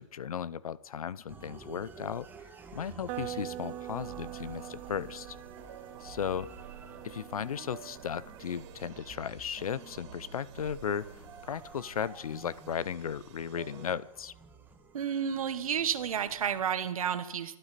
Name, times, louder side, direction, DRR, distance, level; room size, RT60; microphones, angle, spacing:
voice 1, 0.0-2.3 2.7-5.4 6.0-6.5 7.0-14.3, left 8 dB, 85° left, 21 dB, 0.7 m, -36 dB
sound 1, 1.3-16.6, right 4 dB, 10° right, 1.5 m, -52 dB
sound 2, 3.1-8.8, right 15 dB, 30° right, 0.6 m, -44 dB
sound 3, 4.0-14.0, right 7 dB, 50° right, 2.7 m, -50 dB
voice 2, 14.9-17.6, right 8 dB, 75° right, 11 dB, 1.3 m, -31 dB
25.0 x 12.5 x 4.2 m, 0.97 s
hypercardioid pair, 135°, 18 cm